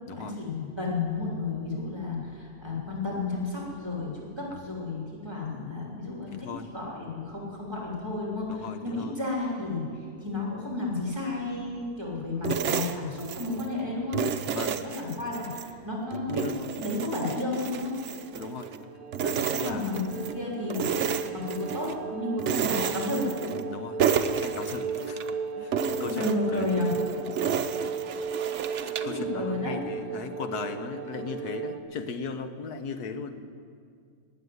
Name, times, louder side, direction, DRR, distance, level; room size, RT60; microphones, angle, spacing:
voice 1, 0.1-4.1 4.4-6.5 6.7-9.8 10.2-14.2 14.9-18.0 19.5-20.8 21.3-23.3 25.9-27.0 29.0-29.8, left 2 dB, 15° right, -3 dB, 3.3 m, -32 dB
voice 2, 6.3-6.7 8.5-9.1 14.5-14.8 15.1-15.4 16.3-16.8 18.3-18.7 19.2-19.9 23.7-24.0 24.4-25.2 25.6-26.2 26.5-26.9 29.0-33.4, left 4 dB, 85° left, 8 dB, 1.6 m, -37 dB
sound 1, 12.4-13.7 14.1-15.7 16.1-18.8 19.1-20.4 20.7-22.0 22.4-23.7 24.0-25.3 25.7-29.2, right 7 dB, 55° right, 1.0 m, -31 dB
sound 2, 17.8-31.8, right 4 dB, 75° right, 1.4 m, -36 dB
18.5 x 7.7 x 9.5 m, 2.2 s
omnidirectional pair, 1.6 m